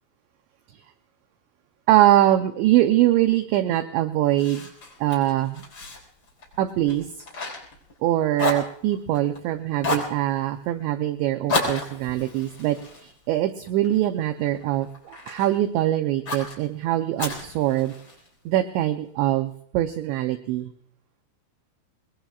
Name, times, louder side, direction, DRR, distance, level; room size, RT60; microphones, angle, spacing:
voice 1, 1.9-4.7 5.0-5.6 6.6-7.1 8.0-17.9 18.5-20.7, right 13 dB, 80° right, 7 dB, 2.7 m, -23 dB
Fire, 4.4-8.1 8.3-9.4 9.8-10.2 11.5-13.9 14.4-15.5 16.3-16.6 17.2-18.3, left 2 dB, 25° left, 5.1 m, -31 dB
24.5 x 21.0 x 2.4 m, 0.64 s
omnidirectional pair, 5.7 m